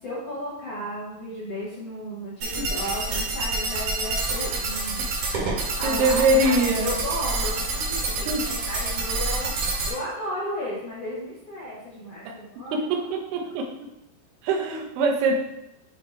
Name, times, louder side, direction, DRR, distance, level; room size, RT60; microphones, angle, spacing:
voice 1, 0.0-5.1 5.4-12.7 13.4-13.5, equal, 65° left, -8 dB, 1.5 m, -34 dB
sound 1, 2.4-9.9, right 3 dB, 60° right, 2.3 m, -27 dB
voice 2, 5.8-6.9 8.3-8.4 12.3-12.4 12.7-13.6 14.4-15.3, right 2 dB, 80° right, 1 dB, 2.9 m, -23 dB
8.7 x 2.9 x 4.4 m, 0.86 s
omnidirectional pair, 4.8 m